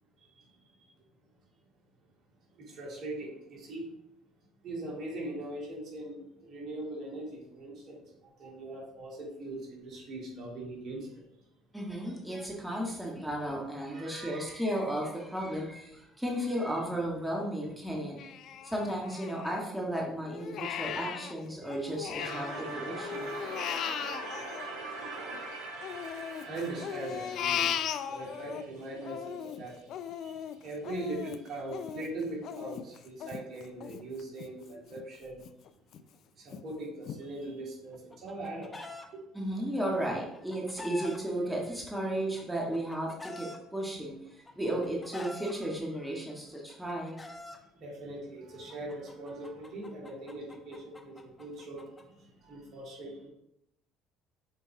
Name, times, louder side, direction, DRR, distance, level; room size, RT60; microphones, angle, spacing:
voice 1, 2.7-3.9 4.6-8.0 8.4-11.1 13.9-14.5 23.6-23.8 24.2-24.7 26.5-27.7 28.1-29.7 30.2-30.3 30.6-35.4 36.4-39.2 47.8-51.9 52.4-53.3, right 2 dB, 55° right, -3 dB, 2.4 m, -41 dB
voice 2, 11.7-18.2 18.6-23.3 39.3-47.2, right 1 dB, 5° right, -2 dB, 1.7 m, -34 dB
Crying sobbing, 18.2-19.8 20.2-22.6 22.9-25.4 25.8-28.6 29.0-34.5 34.9-35.0 35.4-36.0 36.5-36.6 37.1-37.2, left 9 dB, 60° left, 0.4 m, -37 dB
sound 1, 22.2-29.1, right 2 dB, 75° right, 1.4 m, -42 dB
Chicken rooster, 37.9-39.1 40.1-41.2 42.2-43.6 44.5-45.5 46.5-47.6 48.7-52.0, left 2 dB, 20° left, 1.0 m, -45 dB
6.5 x 4.7 x 3.4 m, 0.81 s
hypercardioid pair, 60°, 0 cm